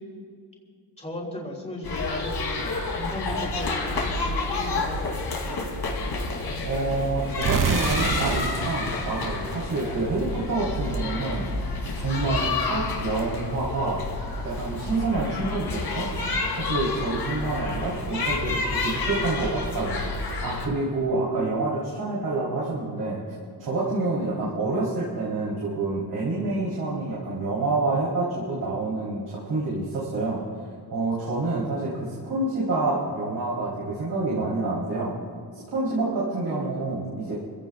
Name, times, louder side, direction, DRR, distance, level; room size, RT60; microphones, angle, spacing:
voice 1, 1.0-5.7, left 1 dB, 15° left, -2 dB, 3.6 m, -37 dB
sound 1, 1.8-20.7, left 3 dB, 75° left, 3.2 m, -29 dB
voice 2, 6.6-11.5 11.9-14.1 14.4-16.1 16.5-23.2 23.6-30.5 30.9-35.1 35.5-37.3, right 2 dB, 70° right, -7 dB, 4.0 m, -28 dB
sound 2, 7.4-10.3, right 7 dB, 50° right, 0.8 m, -28 dB
28.5 x 16.5 x 2.5 m, 2.3 s
wide cardioid pair, 170°, 40 cm